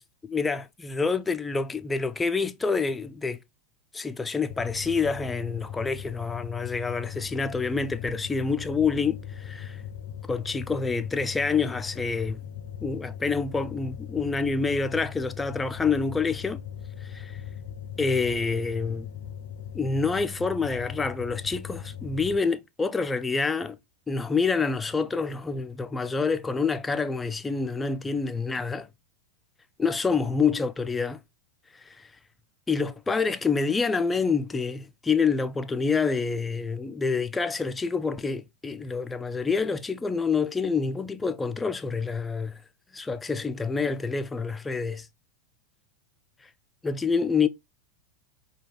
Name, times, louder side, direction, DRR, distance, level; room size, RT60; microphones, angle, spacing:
voice 1, 0.0-3.4 3.9-9.8 10.3-12.4 12.8-16.6 17.0-17.4 18.0-19.1 19.7-23.8 24.1-28.9 29.8-31.2 31.7-32.1 32.7-42.6 42.9-45.1 46.8-47.5, left 4 dB, 15° left, 0.5 m, -27 dB
sound 1, 4.5-22.4, left 9 dB, 60° left, 0.5 m, -39 dB
5.1 x 2.3 x 3.1 m
hypercardioid pair, 100°, 0 cm